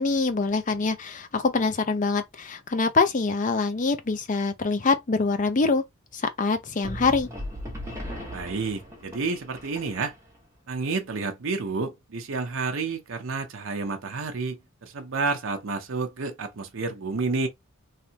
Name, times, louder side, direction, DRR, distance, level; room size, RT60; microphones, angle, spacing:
voice 1, 0.0-5.8 6.1-7.3, left 4 dB, 35° left, 0.5 m, -24 dB
sound 1, 6.8-10.4, equal, 15° right, 1.2 m, -37 dB
voice 2, 8.3-10.1 10.7-17.5, right 4 dB, 65° right, 0.6 m, -30 dB
3.2 x 2.6 x 2.8 m
head